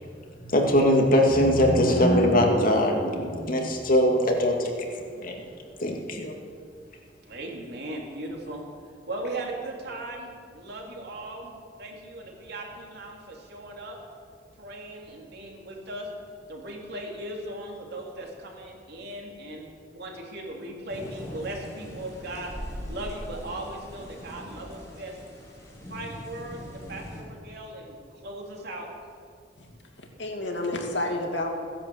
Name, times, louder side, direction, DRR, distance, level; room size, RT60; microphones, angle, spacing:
voice 1, 0.4-4.9 5.2-5.4 5.8-6.3, equal, 50° left, 1 dB, 2.3 m, -21 dB
voice 2, 7.3-8.6 9.1-14.0 14.6-16.1 16.5-19.7 19.9-25.2 25.9-28.9, right 1 dB, 60° right, 0 dB, 3.1 m, -38 dB
sound 1, 20.9-27.2, equal, 20° left, 4.3 m, -41 dB
voice 3, 29.6-31.6, left 1 dB, 70° left, 2 dB, 2.4 m, -31 dB
16.0 x 10.5 x 8.0 m, 2.2 s
head